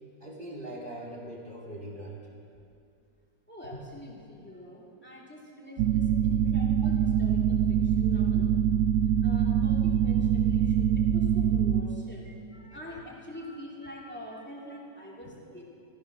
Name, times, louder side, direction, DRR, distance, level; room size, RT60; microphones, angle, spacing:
voice 1, 0.2-2.1 12.3-13.0 13.8-14.1, right 1 dB, 25° right, -3 dB, 2.7 m, -42 dB
voice 2, 3.5-8.4 9.2-10.9 11.1-12.2 12.7-15.6, left 1 dB, 5° left, -4 dB, 2.8 m, -45 dB
sound 1, 5.8-11.8, right 8 dB, 70° right, 1.2 m, -24 dB
15.0 x 14.5 x 6.2 m, 2.5 s
omnidirectional pair, 1.9 m